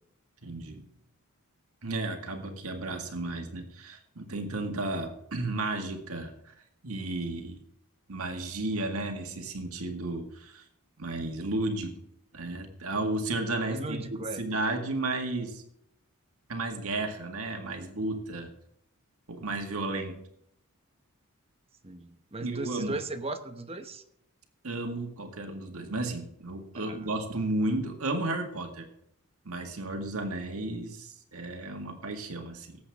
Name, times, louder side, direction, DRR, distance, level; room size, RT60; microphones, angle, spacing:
voice 1, 0.4-0.8 1.8-6.5 6.8-7.6 8.1-10.6 11.0-11.9 12.3-15.6 16.5-18.5 19.3-20.1 22.4-23.0 24.6-28.9 29.5-32.8, right 2 dB, 70° right, 4 dB, 1.9 m, -33 dB
voice 2, 13.7-14.5 21.8-24.0 26.7-27.1, right 2 dB, 25° right, 7 dB, 1.0 m, -37 dB
18.5 x 8.1 x 3.6 m, 0.76 s
head